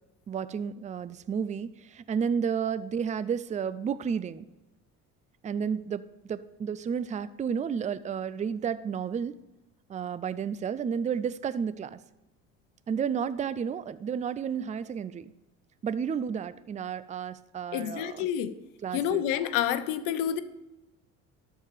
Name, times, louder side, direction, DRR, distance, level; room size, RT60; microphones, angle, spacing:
voice 1, 0.3-4.5 5.4-9.4 9.9-12.0 12.9-15.3 15.8-18.3 18.8-19.2, right 7 dB, 20° right, 0.4 m, -32 dB
voice 2, 17.7-18.5 18.9-20.4, left 10 dB, 80° left, 0.9 m, -28 dB
13.0 x 4.7 x 6.7 m
supercardioid pair, 95°, 32 cm